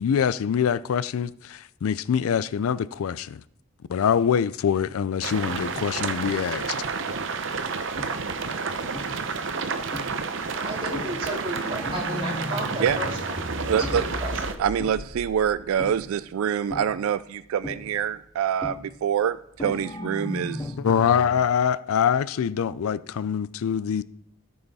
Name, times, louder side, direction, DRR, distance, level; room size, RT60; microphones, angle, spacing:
voice 1, 0.0-3.4 3.9-6.8 20.8-24.0, left 7 dB, 85° left, 0.4 m, -24 dB
sound 1, 5.2-14.6, right 4 dB, 65° right, 0.7 m, -30 dB
sound 2, 7.1-7.4 8.0-8.5 8.9-9.3 9.9-10.4 10.9-16.3 16.7-17.2 17.6-18.1 18.6-19.1 19.6-21.5, left 1 dB, 15° left, 0.5 m, -36 dB
voice 2, 10.4-13.3 13.8-14.6, equal, 25° right, 2.4 m, -34 dB
voice 3, 13.7-14.0 14.6-20.7, right 8 dB, 80° right, 0.3 m, -26 dB
13.5 x 5.6 x 4.1 m
head